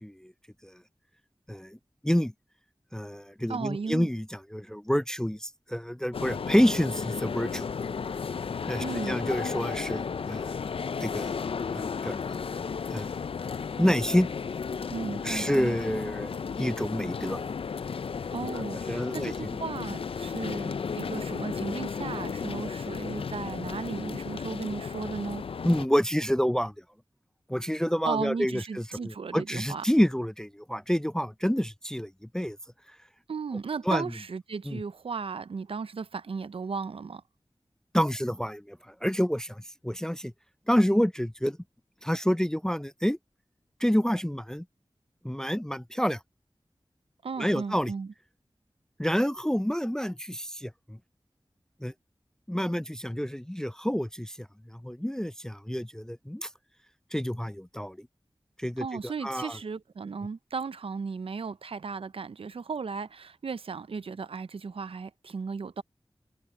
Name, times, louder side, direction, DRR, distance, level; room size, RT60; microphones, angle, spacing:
voice 1, 0.0-0.3 0.6-0.7 1.5-1.8 2.0-2.3 2.9-7.7 8.7-10.5 11.0-11.3 11.7-12.2 12.9-13.1 13.8-14.3 15.2-17.4 18.5-19.3 25.6-26.7 27.5-32.6 33.9-34.0 34.7-34.8 37.9-40.3 40.7-41.6 42.0-43.2 43.8-44.6 45.2-46.2 47.4-47.9 49.0-51.0 51.8-51.9 52.5-54.5 54.7-56.5 57.1-58.1 58.6-59.6, equal, 5° left, 0.4 m, -28 dB
voice 2, 3.5-4.1 8.8-9.2 14.9-15.8 18.3-25.4 28.0-29.8 33.3-37.2 47.2-48.1 58.8-65.8, right 5 dB, 85° right, 0.5 m, -35 dB
sound 1, 6.1-25.9, left 6 dB, 85° left, 0.4 m, -34 dB
wide cardioid pair, 65°, 9 cm